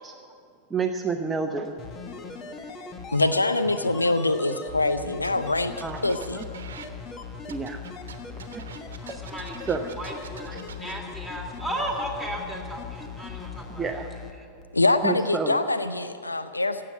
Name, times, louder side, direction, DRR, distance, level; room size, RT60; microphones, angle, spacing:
voice 1, 0.7-1.7 5.8-6.0 6.3-6.4 7.5-7.8 8.5-8.6 9.7-9.9 10.5-10.6 13.8-14.1 15.0-15.6, right 5 dB, 15° right, 5 dB, 0.7 m, -29 dB
sound 1, 1.8-14.3 14.6-14.7, left 5 dB, 25° left, 1.3 m, -39 dB
voice 2, 3.1-5.7 6.0-6.4 14.7-16.8, left 2 dB, 80° left, 11 dB, 0.5 m, -24 dB
sound 2, 5.2-6.9 7.4-10.9, right 7 dB, 65° right, 1.1 m, -45 dB
voice 3, 9.0-9.6 9.9-14.0 14.4-14.5, right 1 dB, 5° left, 1 dB, 3.0 m, -35 dB
16.0 x 7.7 x 9.3 m, 2.3 s
figure-of-eight pair, 90°, 0 cm